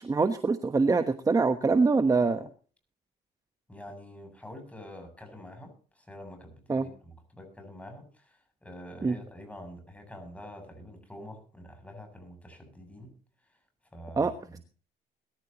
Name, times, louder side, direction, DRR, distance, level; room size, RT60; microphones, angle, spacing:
voice 1, 0.0-2.5 6.7-6.8 9.0-9.2 14.2-14.6, right 4 dB, 20° right, 9 dB, 1.2 m, -25 dB
voice 2, 3.7-13.2 13.9-14.6, equal, 10° left, 6 dB, 7.8 m, -46 dB
22.0 x 14.0 x 3.0 m, 0.41 s
cardioid pair, 110°, 17 cm